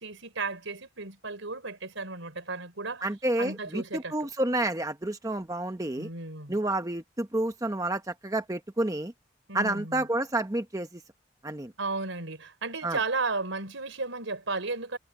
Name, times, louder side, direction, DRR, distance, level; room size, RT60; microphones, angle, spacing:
voice 1, 0.0-3.1 3.4-4.1 6.0-6.5 9.5-10.1 11.8-15.0, right 3 dB, 80° right, 4.2 m, -34 dB
voice 2, 3.0-6.1 6.5-9.1 9.5-11.0 11.4-11.7 12.8-13.0, right 1 dB, 15° right, 0.9 m, -29 dB
head